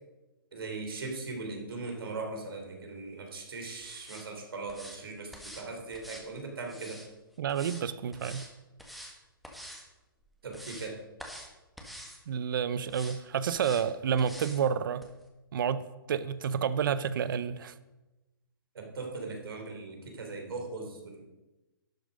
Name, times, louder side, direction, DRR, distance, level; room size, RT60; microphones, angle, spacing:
voice 1, 0.5-7.0 10.4-11.0 18.7-21.2, right 3 dB, 75° right, 2 dB, 3.3 m, -39 dB
sound 1, 3.8-4.3 4.7-5.0 5.3-5.7 5.9-7.1 7.5-7.8 8.1-8.5 8.8-9.1 9.4-9.8 10.2-10.9 11.2-11.5 11.8-12.2 12.9-13.2 13.5-13.8 14.2-14.6 15.0-15.1, equal, ahead, 1.5 m, -46 dB
voice 2, 7.4-8.5 12.3-15.1 15.5-17.7, right 7 dB, 60° right, 15 dB, 0.6 m, -30 dB
11.5 x 7.9 x 5.2 m, 1.1 s
hypercardioid pair, 135°, 12 cm